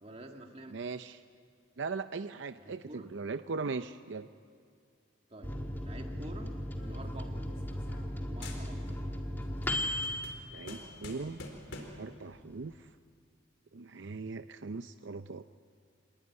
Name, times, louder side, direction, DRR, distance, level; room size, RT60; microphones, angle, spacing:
voice 1, 0.0-0.8 2.6-3.1 5.3-7.6 8.2-9.3, right 1 dB, 30° right, 3 dB, 2.0 m, -49 dB
voice 2, 0.7-1.2 1.8-4.3 10.5-11.4 12.0-12.9 13.7-15.4, right 4 dB, 70° right, 10 dB, 0.6 m, -39 dB
Microwave oven, 5.4-11.5 11.9-12.0 12.3-12.9, left 1 dB, 10° left, 1.9 m, -37 dB
sound 1, 6.8-8.2 8.4-9.1 9.4-12.1, left 2 dB, 70° left, 4.3 m, -48 dB
27.5 x 21.0 x 9.6 m, 2.2 s
head